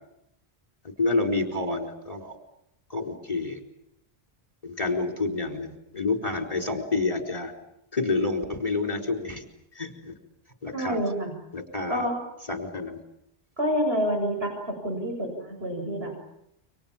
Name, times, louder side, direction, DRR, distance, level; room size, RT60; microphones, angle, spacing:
voice 1, 1.0-2.3 2.9-3.6 4.6-7.5 7.9-9.4 9.7-10.1 10.6-11.0 11.5-12.0 12.5-13.0, left 3 dB, 35° left, 7 dB, 4.7 m, -28 dB
voice 2, 10.7-11.3 11.9-12.2 13.6-16.1, equal, 80° right, 2 dB, 7.5 m, -28 dB
30.0 x 25.5 x 7.4 m, 0.79 s
omnidirectional pair, 1.0 m